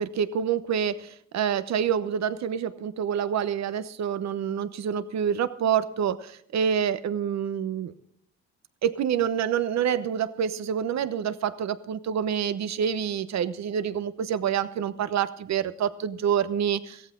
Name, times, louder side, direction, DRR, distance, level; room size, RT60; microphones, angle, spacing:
voice 1, 0.0-7.9 8.8-17.0, right 8 dB, 65° right, 13 dB, 1.0 m, -27 dB
16.0 x 14.5 x 3.8 m, 0.68 s
cardioid pair, 90°, 30 cm